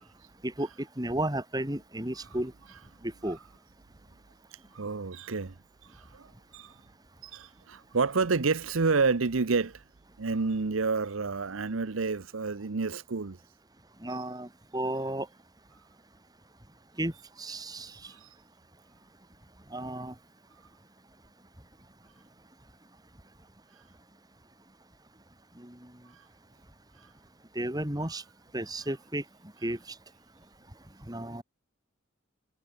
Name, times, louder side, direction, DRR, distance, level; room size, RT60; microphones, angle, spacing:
voice 1, 1.0-2.5 3.0-3.4 14.0-15.3 17.0-17.1 17.4-18.1 19.7-20.1 25.6-25.7 27.5-28.2 28.5-29.2 29.6-29.8 31.1-31.4, right 1 dB, 20° right, 3.2 m, -33 dB
voice 2, 4.7-5.5 5.9-6.3 6.5-6.7 7.2-9.8 10.2-13.4 18.1-18.3, right 4 dB, 85° right, 0.8 m, -29 dB
head